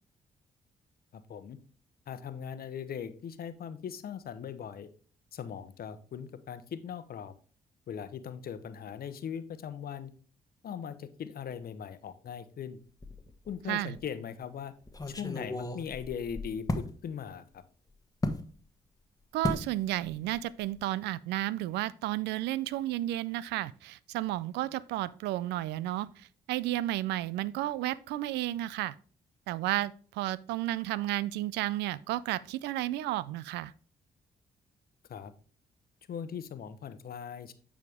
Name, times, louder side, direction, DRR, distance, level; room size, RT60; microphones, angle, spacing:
voice 1, 1.1-1.6 2.1-4.9 5.3-7.3 7.9-10.1 10.6-12.8 13.5-14.7 15.2-17.6 35.1-35.3 36.1-37.5, left 8 dB, 60° left, 0.9 m, -40 dB
sound 1, 13.0-13.6 14.0-14.1 14.9-16.9 18.2-18.5 19.4-19.7 20.0-20.4 20.6-20.8, left 2 dB, 20° left, 1.3 m, -34 dB
voice 2, 19.3-28.9 29.5-33.7, right 15 dB, 75° right, 0.4 m, -32 dB
9.1 x 5.0 x 3.6 m
hypercardioid pair, 45°, 18 cm